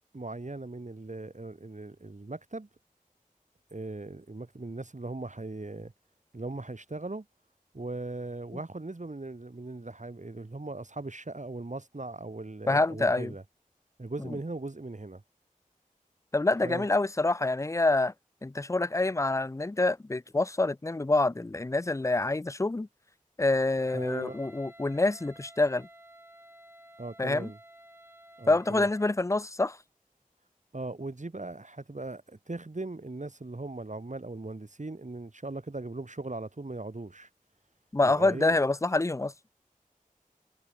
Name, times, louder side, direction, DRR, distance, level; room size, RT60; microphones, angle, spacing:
voice 1, 0.1-2.7 3.7-5.9 6.3-7.3 7.7-13.4 14.0-15.2 16.6-16.9 23.9-24.4 27.0-27.6 28.4-28.9 30.7-37.3 38.0-38.6, right 2 dB, 60° right, 1.5 m, -39 dB
voice 2, 12.7-13.3 16.3-18.1 18.4-22.9 23.4-25.9 27.2-27.5 28.5-29.8 37.9-39.3, left 2 dB, 20° left, 0.4 m, -26 dB
Wind instrument woodwind instrument, 23.9-29.2, right 1 dB, 15° right, 2.7 m, -53 dB
wide cardioid pair, 40°, 14 cm